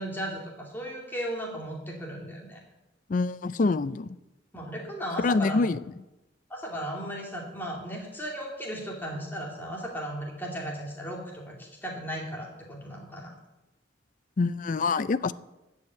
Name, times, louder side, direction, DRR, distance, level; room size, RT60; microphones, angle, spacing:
voice 1, 0.0-2.6 4.5-5.6 6.5-13.3, equal, 10° left, -1 dB, 2.7 m, -36 dB
voice 2, 3.1-4.2 5.2-5.8 14.4-15.3, left 3 dB, 45° left, 17 dB, 0.4 m, -25 dB
13.5 x 5.7 x 9.2 m, 0.99 s
head